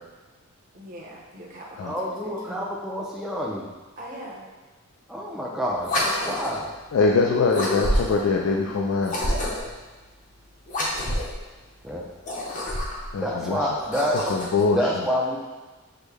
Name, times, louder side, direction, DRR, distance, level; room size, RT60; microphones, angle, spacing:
voice 1, 0.7-2.7 4.0-4.5 13.4-13.5, right 1 dB, 40° right, -5 dB, 0.8 m, -42 dB
voice 2, 1.9-3.7 5.1-6.7 11.8-12.0 13.2-14.3 14.7-15.4, equal, ahead, -4 dB, 0.4 m, -28 dB
sound 1, 5.8-6.7 7.5-8.3 9.0-9.8 10.7-11.4 12.1-13.1 13.7-14.6, left 1 dB, 35° left, 0.7 m, -27 dB
voice 3, 6.9-9.2 13.1-13.6 14.3-14.8, left 4 dB, 65° left, 0 dB, 0.3 m, -22 dB
6.1 x 2.1 x 3.4 m, 1.2 s
head